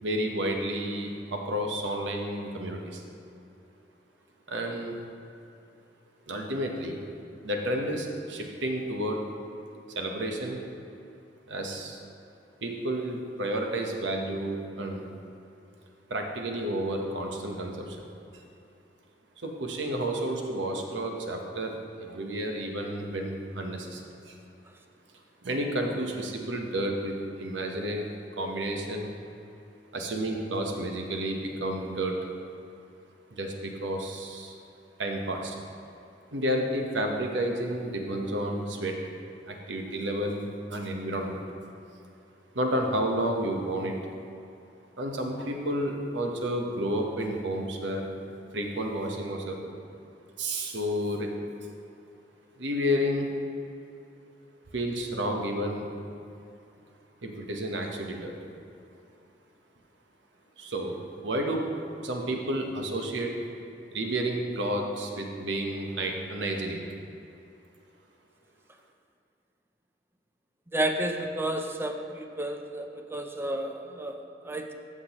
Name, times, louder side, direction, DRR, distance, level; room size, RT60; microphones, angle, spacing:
voice 1, 0.0-3.0 4.5-4.9 6.3-7.0 7.4-9.2 10.0-10.6 11.5-12.0 12.6-15.1 16.1-18.0 18.3-18.4 19.4-24.4 25.4-29.1 29.9-32.2 33.3-34.5 35.0-35.6 36.3-39.0 39.4-41.4 42.5-44.0 45.0-48.0 48.5-49.7 50.4-51.3 52.6-53.3 54.7-55.9 57.2-58.3 60.6-61.0 61.2-61.6 62.0-63.3 63.9-66.8, right 1 dB, 90° right, 2 dB, 1.0 m, -31 dB
voice 2, 70.7-74.7, right 1 dB, 15° right, 4 dB, 0.5 m, -31 dB
13.5 x 6.0 x 3.0 m, 2.7 s
head